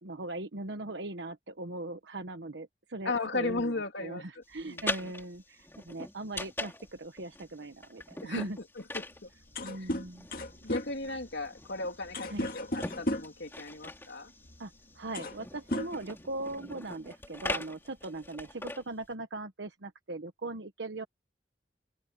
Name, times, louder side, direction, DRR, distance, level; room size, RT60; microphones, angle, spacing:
voice 1, 0.0-8.6 9.6-10.3 12.3-12.5 14.6-21.0, right 2 dB, 85° right, 1.2 m, -40 dB
voice 2, 3.0-5.1 8.2-8.4 8.9-9.3 9.8-9.9 10.6-14.3, left 3 dB, 80° left, 2.9 m, -36 dB
sound 1, 4.5-19.1, left 2 dB, 15° left, 2.7 m, -42 dB
sound 2, 9.1-9.2 9.4-13.4 14.4-14.6 15.0-15.4 15.7-16.6, left 1 dB, 55° left, 2.0 m, -35 dB
open air
head